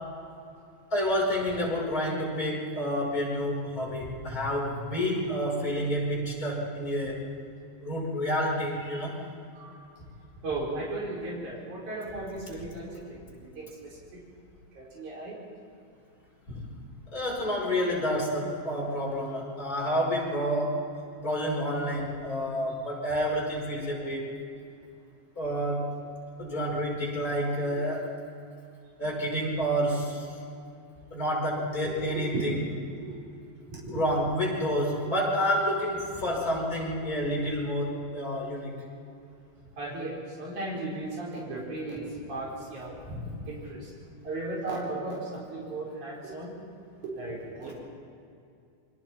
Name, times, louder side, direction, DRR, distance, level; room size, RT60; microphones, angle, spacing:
voice 1, 0.9-7.2 7.8-9.2 16.5-16.6 17.1-20.8 21.2-24.2 25.4-25.9 26.4-28.1 29.0-30.3 31.1-32.6 33.9-38.7 43.1-43.2, equal, 30° left, -4 dB, 5.9 m, -29 dB
voice 2, 10.4-13.7 14.8-15.4 22.7-22.8 31.8-32.5 33.0-33.1 33.7-34.0 39.8-42.9 43.5-43.9 44.2-46.5 47.0-47.8, right 2 dB, 85° right, -5 dB, 6.0 m, -36 dB
28.0 x 24.5 x 4.5 m, 2.5 s
omnidirectional pair, 3.3 m